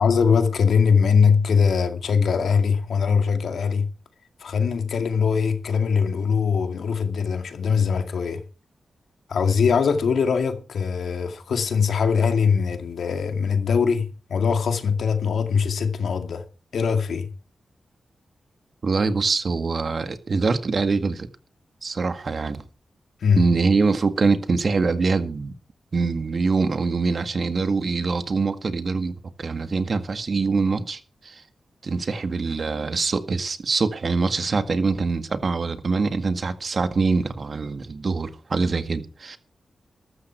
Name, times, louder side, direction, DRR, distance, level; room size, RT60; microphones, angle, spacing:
voice 1, 0.0-3.9 4.4-8.4 9.3-16.4 16.7-17.3 23.2-23.5, left 6 dB, 80° left, 2.3 m, -21 dB
voice 2, 18.8-21.3 21.8-22.6 23.4-25.5 25.9-31.4 31.8-39.4, right 4 dB, 55° right, 2.0 m, -24 dB
13.5 x 13.0 x 4.6 m
cardioid pair, 60°, 0 cm